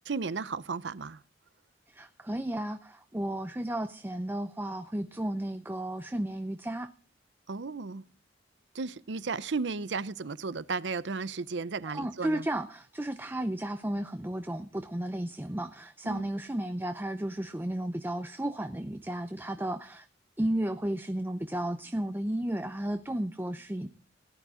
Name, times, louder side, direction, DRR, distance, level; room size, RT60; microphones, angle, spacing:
voice 1, 0.1-1.2 7.5-8.0 8.7-12.5 16.0-16.3, right 4 dB, 70° right, 0.6 m, -34 dB
voice 2, 1.9-6.9 11.9-20.1 20.4-23.9, right 1 dB, 10° right, 0.6 m, -33 dB
17.5 x 11.0 x 3.7 m
head